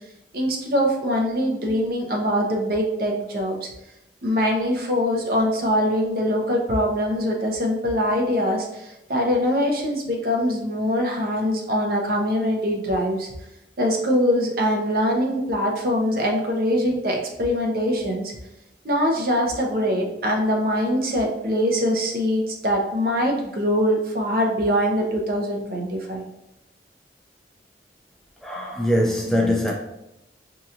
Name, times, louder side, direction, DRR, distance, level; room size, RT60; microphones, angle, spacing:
voice 1, 0.3-3.7 4.2-13.3 13.8-18.3 18.8-26.2, equal, 55° right, 0.7 m, -23 dB
voice 2, 28.4-29.7, left 1 dB, ahead, 0.4 m, -22 dB
5.4 x 2.9 x 2.5 m
head